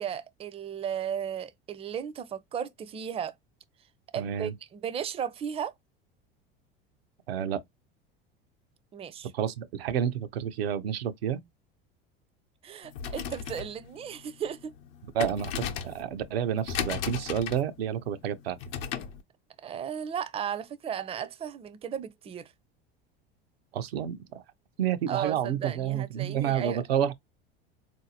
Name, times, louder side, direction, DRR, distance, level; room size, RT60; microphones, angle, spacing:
voice 1, 0.0-3.3 4.1-5.7 8.9-9.3 12.6-14.7 19.6-22.5 25.1-26.8, right 8 dB, 20° right, 0.4 m, -35 dB
voice 2, 4.1-4.5 7.3-7.6 9.3-11.4 15.1-18.6 23.7-24.4 24.8-27.1, right 9 dB, 90° right, 0.6 m, -29 dB
sound 1, 12.8-19.2, left 8 dB, 75° left, 0.8 m, -37 dB
3.8 x 2.6 x 2.7 m
hypercardioid pair, 85°, 29 cm